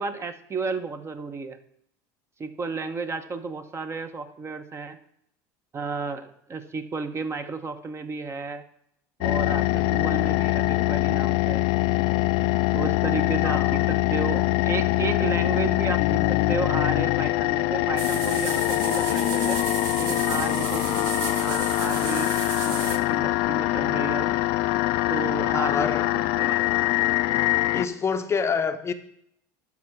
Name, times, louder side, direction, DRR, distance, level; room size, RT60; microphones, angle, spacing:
voice 1, 0.0-1.6 2.4-5.0 5.7-8.6 9.2-11.7 12.7-19.6 20.0-22.4 22.6-24.3 25.1-25.9 26.4-26.6, right 4 dB, 25° right, 0.8 m, -33 dB
sound 1, 9.2-27.9, left 18 dB, 65° left, 0.5 m, -23 dB
voice 2, 13.4-13.8 25.5-26.1 27.7-28.9, left 5 dB, 30° left, 0.7 m, -27 dB
sound 2, 18.0-23.0, right 7 dB, 75° right, 1.1 m, -34 dB
12.0 x 4.6 x 5.9 m
supercardioid pair, 100°, 10 cm